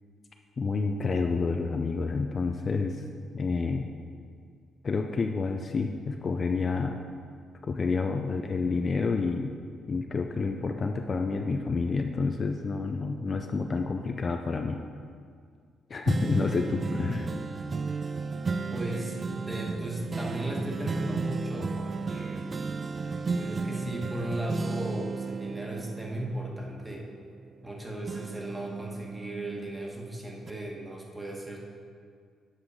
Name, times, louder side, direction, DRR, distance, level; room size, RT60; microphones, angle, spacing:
voice 1, 0.6-3.0 3.3-3.9 4.8-7.0 7.6-9.5 9.9-14.8 15.9-17.3, left 4 dB, 40° left, 4 dB, 0.5 m, -29 dB
sound 1, 16.1-27.7 28.1-30.0 30.5-30.6, right 4 dB, 35° right, 0.4 m, -34 dB
voice 2, 18.7-22.5 23.4-27.1 27.6-31.6, right 1 dB, 10° right, -1 dB, 1.5 m, -36 dB
8.2 x 5.7 x 5.0 m, 2.1 s
cardioid pair, 90°, 0 cm